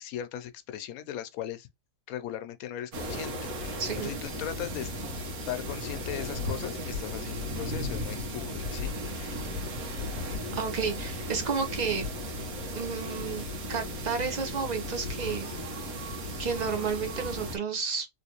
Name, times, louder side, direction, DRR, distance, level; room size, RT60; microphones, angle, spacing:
voice 1, 0.0-1.7 2.1-4.9 5.5-9.4, left 10 dB, 80° left, 1.0 m, -38 dB
sound 1, 2.9-17.6, left 1 dB, 75° right, 1.5 m, -35 dB
voice 2, 3.8-4.2 10.5-12.1 12.7-15.5 16.4-18.1, right 5 dB, 35° right, 0.8 m, -31 dB
3.1 x 3.0 x 2.9 m
omnidirectional pair, 1.5 m